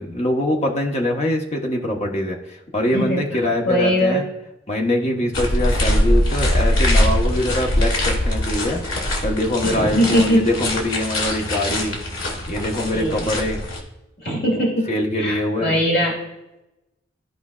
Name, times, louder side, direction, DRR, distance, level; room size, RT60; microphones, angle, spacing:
voice 1, 0.0-4.3 4.7-8.8 9.2-12.0 12.5-13.6 14.9-15.7, left 1 dB, 30° left, 1 dB, 1.1 m, -23 dB
voice 2, 2.9-3.2 3.7-4.2 9.6-10.4 12.9-13.3 14.2-14.9 15.2-16.1, equal, 50° left, -2 dB, 2.2 m, -20 dB
sound 1, 5.3-13.8, left 1 dB, 80° left, 2.1 m, -22 dB
14.5 x 4.9 x 2.4 m, 0.95 s
head